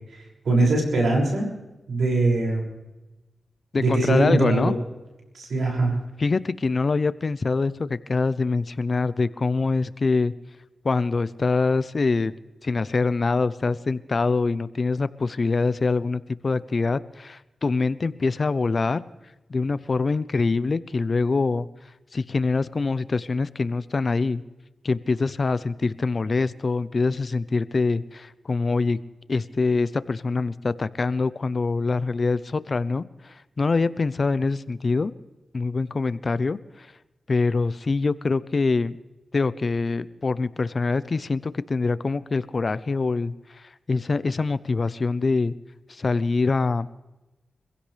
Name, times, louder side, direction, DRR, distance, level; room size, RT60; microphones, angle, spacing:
voice 1, 0.1-1.5 1.9-2.7 3.8-4.8 5.3-5.9, right 2 dB, 80° right, -1 dB, 6.3 m, -22 dB
voice 2, 3.7-4.8 6.2-10.3 10.8-12.3 12.6-19.0 19.5-21.7 22.1-24.4 24.8-29.0 29.3-35.1 35.5-36.9 37.3-39.0 39.3-45.6 45.9-46.9, left 3 dB, 50° left, 16 dB, 0.7 m, -24 dB
25.5 x 16.0 x 3.4 m, 1.0 s
cardioid pair, 60°, 0 cm